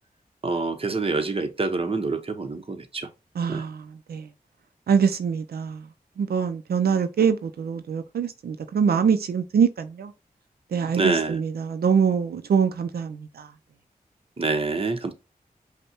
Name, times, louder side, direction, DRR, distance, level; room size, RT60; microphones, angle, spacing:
voice 1, 0.4-3.1 3.5-3.6 10.9-11.4 14.4-15.1, right 3 dB, 40° right, 0.9 m, -26 dB
voice 2, 3.4-4.3 4.9-5.8 6.2-10.1 10.7-13.5, right 6 dB, 85° right, 0.5 m, -24 dB
5.4 x 2.2 x 4.3 m
wide cardioid pair, 65°, 16 cm